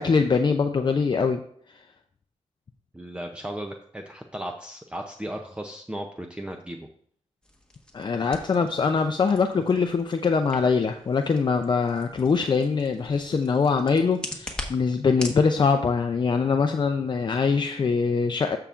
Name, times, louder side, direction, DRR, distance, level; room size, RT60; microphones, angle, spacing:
voice 1, 0.0-1.4 1.7-1.8 7.9-18.6, left 5 dB, 40° left, 6 dB, 0.5 m, -23 dB
voice 2, 2.9-6.9, right 1 dB, 10° right, 4 dB, 0.6 m, -36 dB
sound 1, 7.4-15.4, left 1 dB, 10° left, 1.4 m, -42 dB
14.0 x 5.7 x 2.5 m, 0.64 s
wide cardioid pair, 95°, 12 cm